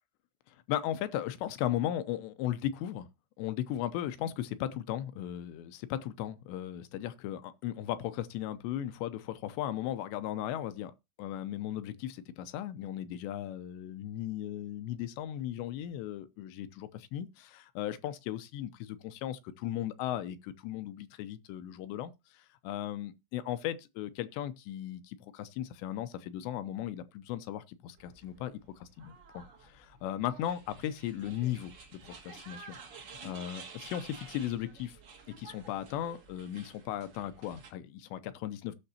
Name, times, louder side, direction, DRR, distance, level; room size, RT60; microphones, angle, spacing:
voice 1, 0.5-3.1 3.4-10.9 11.2-35.0 35.4-38.8, left 12 dB, 80° left, 2.7 m, -37 dB
sound 1, 28.0-37.7, right 5 dB, 50° right, 1.8 m, -51 dB
18.5 x 6.4 x 2.8 m
omnidirectional pair, 5.5 m